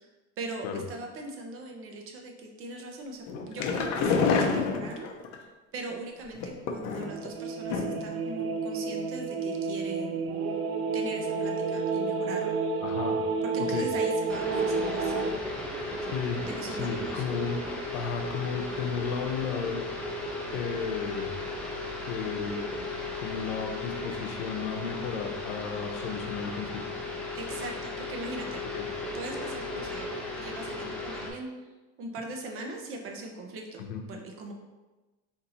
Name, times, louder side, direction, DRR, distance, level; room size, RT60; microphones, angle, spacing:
voice 1, 0.4-5.1 5.4-10.2 10.9-12.8 13.4-15.4 16.4-17.2 27.3-28.6 29.1-31.5 32.0-33.8 34.1-34.5, right 2 dB, 40° right, 2 dB, 0.7 m, -40 dB
sound 1, 3.3-5.4 6.3-7.3 7.7-8.1 8.4-8.5 8.8-8.9, left 5 dB, 50° left, 0.6 m, -28 dB
sound 2, 6.9-15.3, right 4 dB, 75° right, 0.6 m, -30 dB
voice 2, 12.8-13.2 13.7-13.9 16.1-17.7 17.9-19.8 20.5-21.4 22.0-26.8 28.7-28.9 33.8-34.0, left 6 dB, 85° left, 3 dB, 0.8 m, -34 dB
sound 3, 14.3-31.3, left 2 dB, 5° left, 0.4 m, -36 dB
4.2 x 2.6 x 4.1 m, 1.2 s
cardioid pair, 165°, 36 cm